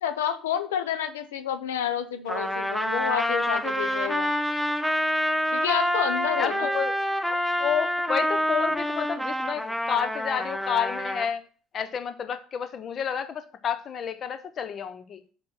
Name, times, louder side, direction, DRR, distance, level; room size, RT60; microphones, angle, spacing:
voice 1, 0.0-4.3 5.5-6.7, left 9 dB, 85° left, 9 dB, 0.7 m, -29 dB
Trumpet, 2.3-11.3, equal, 5° left, 1.1 m, -27 dB
voice 2, 6.4-6.9 7.2-11.4 11.7-15.2, left 8 dB, 50° left, 12 dB, 0.9 m, -30 dB
6.0 x 4.4 x 5.9 m, 0.41 s
hypercardioid pair, 60°, 0 cm